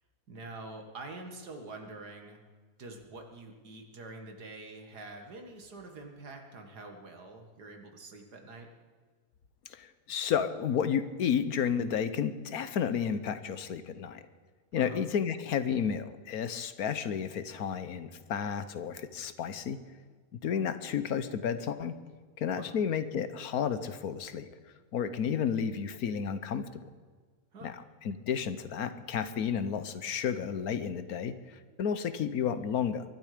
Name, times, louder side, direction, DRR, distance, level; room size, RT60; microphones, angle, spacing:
voice 1, 0.3-2.4 2.8-8.7 14.8-15.0 22.5-22.7 27.5-27.8, right 2 dB, 80° right, 4 dB, 2.5 m, -46 dB
voice 2, 9.7-14.2 14.7-19.8 20.4-22.0 22.4-24.5 24.9-26.9 27.6-27.8 28.0-33.0, left 7 dB, 70° left, 12 dB, 1.4 m, -32 dB
23.5 x 12.0 x 5.1 m, 1.6 s
omnidirectional pair, 1.7 m